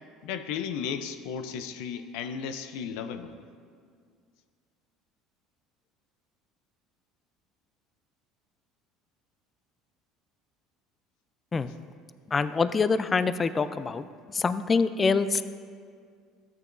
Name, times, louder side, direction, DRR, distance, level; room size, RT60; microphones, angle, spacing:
voice 1, 0.2-3.3, left 7 dB, 75° left, 9 dB, 0.6 m, -34 dB
voice 2, 12.3-14.0 14.3-15.4, left 4 dB, 30° left, 13 dB, 0.4 m, -25 dB
13.5 x 8.6 x 2.6 m, 2.1 s
supercardioid pair, 80°, 0 cm